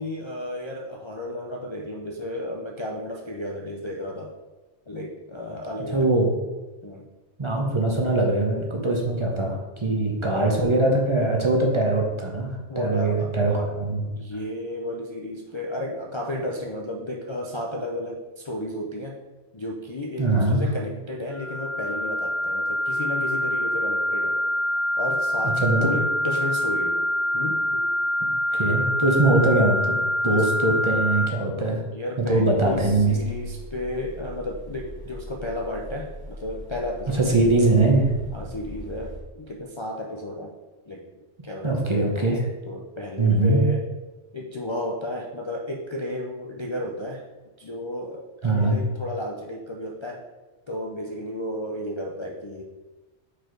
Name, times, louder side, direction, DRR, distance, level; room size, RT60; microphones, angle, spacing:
voice 1, 0.0-4.3 4.9-6.1 6.8-7.1 12.7-13.7 14.2-19.2 19.5-24.4 25.0-27.1 27.3-27.9 30.3-30.5 31.9-37.3 38.3-40.6 40.9-41.0 41.4-42.4 42.7-43.9 44.3-47.2 47.6-50.2 50.7-52.6, left 1 dB, 40° left, -3 dB, 0.4 m, -33 dB
voice 2, 5.9-6.3 7.4-14.0 20.2-20.6 25.6-25.9 28.2-28.3 28.6-30.0 30.2-31.8 32.3-33.2 37.1-38.1 41.6-42.4 43.2-43.6 48.4-48.8, right 2 dB, 30° right, 0 dB, 0.8 m, -22 dB
sound 1, 21.3-31.3, equal, 60° left, 1.3 m, -25 dB
sound 2, 32.6-39.2, equal, 10° left, 1.4 m, -40 dB
4.9 x 4.4 x 4.5 m, 1.2 s
omnidirectional pair, 1.2 m